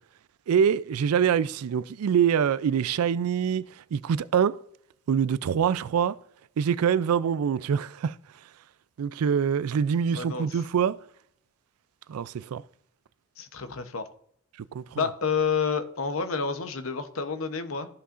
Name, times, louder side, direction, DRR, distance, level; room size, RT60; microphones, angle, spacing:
voice 1, 0.5-4.6 5.1-6.2 6.6-8.2 9.0-11.0 12.1-12.6 14.7-15.1, right 7 dB, 80° right, 0.4 m, -25 dB
voice 2, 10.1-10.5 13.4-14.0 15.0-17.9, left 5 dB, 65° left, 0.8 m, -29 dB
14.5 x 5.5 x 2.5 m
head